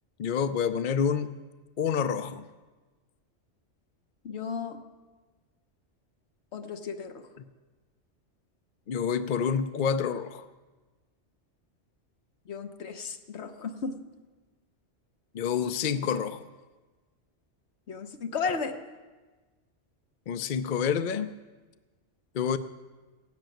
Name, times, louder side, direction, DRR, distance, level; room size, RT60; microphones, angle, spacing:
voice 1, 0.2-1.3 1.8-2.4 8.9-10.4 15.3-16.4 20.3-21.3 22.3-22.6, left 7 dB, 50° left, 11 dB, 0.7 m, -28 dB
voice 2, 4.2-4.8 6.5-7.2 12.5-13.9 17.9-18.7, left 5 dB, 65° left, 6 dB, 1.4 m, -34 dB
16.5 x 7.6 x 9.2 m, 1.3 s
omnidirectional pair, 1.2 m